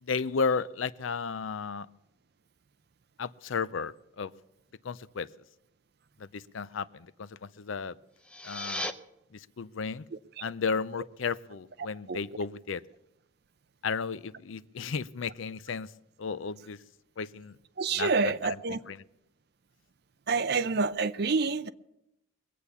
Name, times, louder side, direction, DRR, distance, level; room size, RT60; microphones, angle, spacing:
voice 1, 0.0-1.9 3.2-4.3 4.8-5.3 6.2-8.0 8.4-8.9 9.3-10.0 10.4-12.8 13.8-15.9 16.2-16.8 17.2-17.6 18.0-18.6 18.9-19.0, left 5 dB, 70° left, 0.5 m, -33 dB
sound 1, 8.1-8.9, left 1 dB, 5° left, 0.6 m, -36 dB
voice 2, 17.8-18.8 20.3-21.7, right 4 dB, 50° right, 0.6 m, -28 dB
21.5 x 8.3 x 7.0 m
head